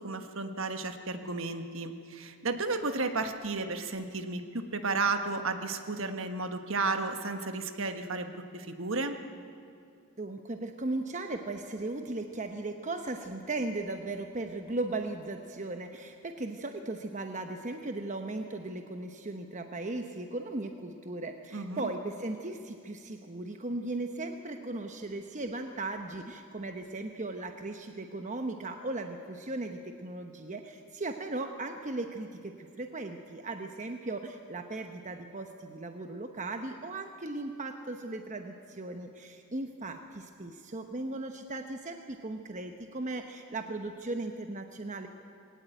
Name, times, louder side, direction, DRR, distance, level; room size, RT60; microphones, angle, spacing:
voice 1, 0.0-9.2 21.5-21.9, right 3 dB, 60° right, 7 dB, 1.4 m, -33 dB
voice 2, 10.2-45.1, right 2 dB, 35° right, 5 dB, 1.0 m, -37 dB
20.5 x 17.5 x 9.2 m, 2.4 s
head